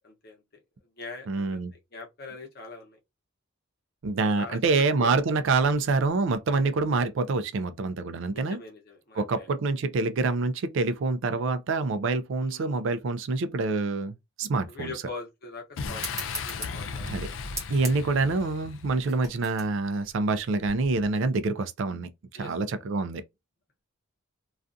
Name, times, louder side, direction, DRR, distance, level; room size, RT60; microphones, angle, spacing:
voice 1, 0.0-0.4 1.0-1.6 1.9-3.0 4.4-4.6 5.0-5.1 5.6-5.9 8.3-9.5 12.4-12.8 14.7-17.1 22.3-22.5, left 3 dB, 50° left, 0.9 m, -42 dB
voice 2, 1.3-1.7 4.0-8.6 9.2-14.9 17.1-17.3 17.7-23.2, right 3 dB, 60° right, 0.4 m, -26 dB
Boom, 15.8-19.4, left 5 dB, 65° left, 0.4 m, -36 dB
sound 1, 16.0-21.1, right 1 dB, 15° right, 0.9 m, -41 dB
2.4 x 2.3 x 2.5 m
head